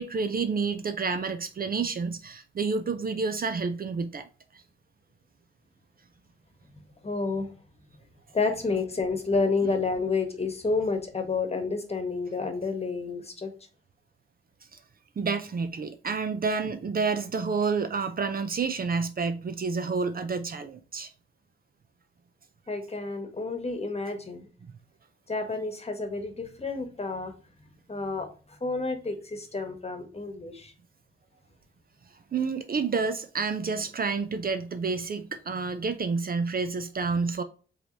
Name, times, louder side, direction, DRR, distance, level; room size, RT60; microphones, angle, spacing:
voice 1, 0.0-4.3 15.2-21.1 32.3-37.4, right 4 dB, 45° right, 0.5 m, -29 dB
voice 2, 7.0-7.5 8.3-13.5 22.7-24.5 25.3-27.3 27.9-30.7, left 3 dB, 30° left, 1.2 m, -30 dB
4.8 x 3.2 x 2.7 m
cardioid pair, 90°, 21 cm